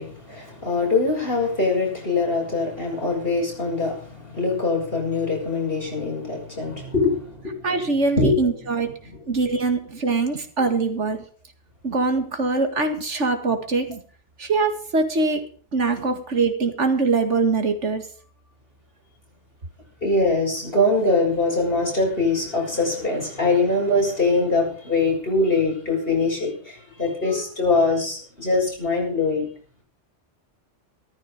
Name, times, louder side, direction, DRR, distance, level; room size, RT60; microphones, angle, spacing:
voice 1, 0.0-7.7 8.2-8.5 8.8-8.9 20.0-29.5, left 3 dB, 50° left, -1 dB, 6.8 m, -23 dB
voice 2, 7.6-8.9 9.3-11.2 11.8-14.0 14.4-15.4 15.7-18.0, right 3 dB, 80° right, 7 dB, 2.4 m, -23 dB
15.0 x 13.5 x 5.3 m, 0.43 s
omnidirectional pair, 1.2 m